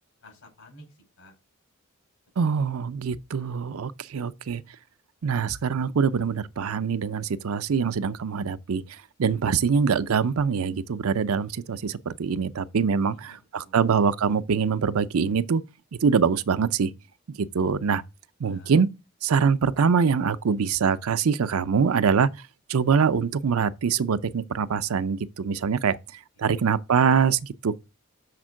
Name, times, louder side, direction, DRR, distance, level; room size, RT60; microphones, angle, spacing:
voice 1, 0.2-1.4 2.5-2.9 13.1-14.0 18.4-18.7 26.3-26.7, left 1 dB, 90° left, 4.8 m, -53 dB
voice 2, 2.4-4.6 5.2-8.8 9.2-15.6 16.0-16.9 17.3-18.0 18.4-18.9 19.2-22.3 22.7-26.0 26.4-27.8, right 6 dB, 80° right, 0.5 m, -24 dB
6.6 x 4.4 x 6.1 m
head